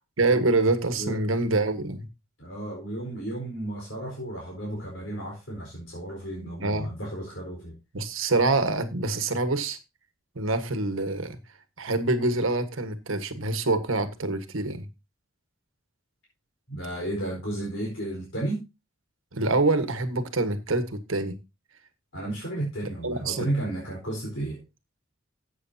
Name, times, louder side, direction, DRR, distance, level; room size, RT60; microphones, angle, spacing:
voice 1, 0.2-2.1 6.4-6.9 7.9-9.8 10.3-11.4 11.8-14.9 19.3-21.4 22.8-23.5, right 2 dB, 75° right, 1.5 m, -26 dB
voice 2, 2.4-7.8 16.7-18.6 22.1-24.6, right 1 dB, 65° left, 4.4 m, -33 dB
14.0 x 8.4 x 2.8 m
head